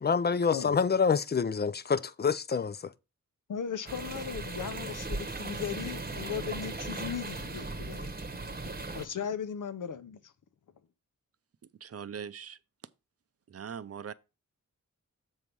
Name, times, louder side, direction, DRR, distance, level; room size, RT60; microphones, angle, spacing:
voice 1, 0.0-2.9, left 5 dB, 30° left, 0.4 m, -27 dB
voice 2, 3.5-8.1 8.6-10.3, left 8 dB, 75° left, 0.8 m, -37 dB
sound 1, 3.9-9.0, right 3 dB, 30° right, 1.0 m, -37 dB
voice 3, 11.6-12.6 13.5-14.1, right 7 dB, 50° right, 0.6 m, -41 dB
7.3 x 4.7 x 5.3 m
wide cardioid pair, 100°, 31 cm